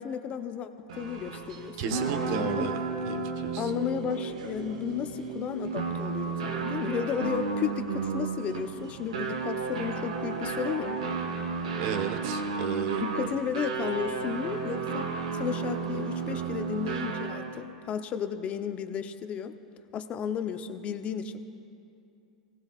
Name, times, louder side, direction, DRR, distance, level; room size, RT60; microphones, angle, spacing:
voice 1, 0.0-2.1 2.4-2.7 3.6-11.0 13.0-19.5 19.9-21.4, left 8 dB, 35° left, 8 dB, 0.9 m, -33 dB
sound 1, 0.9-17.6, right 4 dB, 80° right, 1.5 m, -33 dB
voice 2, 1.8-2.8 3.1-3.7 11.8-13.0, right 7 dB, 55° right, 7 dB, 1.4 m, -33 dB
25.5 x 18.0 x 2.5 m, 2.6 s
hypercardioid pair, 100°, 4 cm